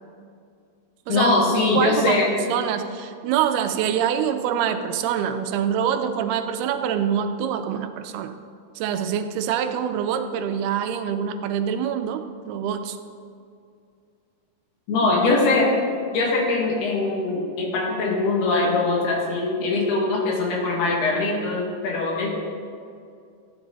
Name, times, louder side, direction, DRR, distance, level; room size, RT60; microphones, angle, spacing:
voice 1, 1.1-2.3 14.9-15.7 16.1-22.3, left 3 dB, 80° left, -2 dB, 3.9 m, -22 dB
voice 2, 1.7-8.3 8.8-13.0, right 8 dB, 85° right, 8 dB, 2.6 m, -25 dB
14.0 x 9.2 x 4.0 m, 2.3 s
omnidirectional pair, 4.6 m